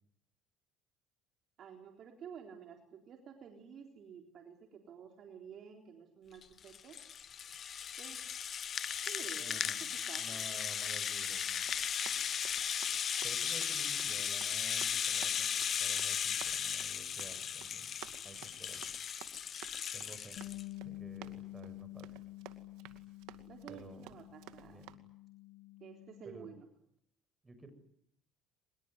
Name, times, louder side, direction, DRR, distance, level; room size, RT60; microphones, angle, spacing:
voice 1, 1.6-7.0 8.0-8.2 9.1-10.4 23.5-24.8 25.8-26.7, right 7 dB, 50° right, 4 dB, 3.8 m, -51 dB
Rattle (instrument), 6.4-20.6, left 8 dB, 45° left, 1.0 m, -36 dB
voice 2, 9.4-9.9 10.2-11.6 13.2-17.9 18.2-18.9 19.9-20.4 20.8-22.2 23.7-24.1 24.6-24.9 26.2-26.5 27.4-27.7, right 2 dB, 20° right, 9 dB, 6.7 m, -53 dB
Run, 11.4-24.9, right 13 dB, 80° right, 2.3 m, -55 dB
Bass guitar, 20.4-26.6, left 18 dB, 70° left, 1.7 m, -49 dB
24.0 x 22.0 x 9.7 m, 0.71 s
cardioid pair, 105°, 0 cm